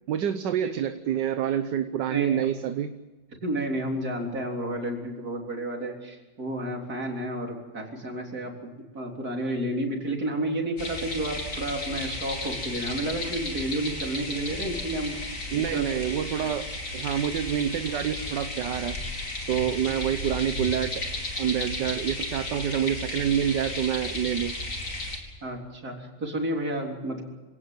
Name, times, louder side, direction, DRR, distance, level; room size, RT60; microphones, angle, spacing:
voice 1, 0.1-3.0 15.5-16.7 16.9-19.0 19.5-20.9 21.4-24.6, right 9 dB, 75° right, 9 dB, 1.6 m, -27 dB
voice 2, 2.1-2.5 3.3-8.5 8.9-15.9 16.4-16.5 25.4-27.2, right 1 dB, 55° right, 1 dB, 4.2 m, -31 dB
sound 1, 10.8-25.2, left 2 dB, 45° left, 3.7 m, -34 dB
26.0 x 17.5 x 7.7 m, 1.2 s
omnidirectional pair, 1.9 m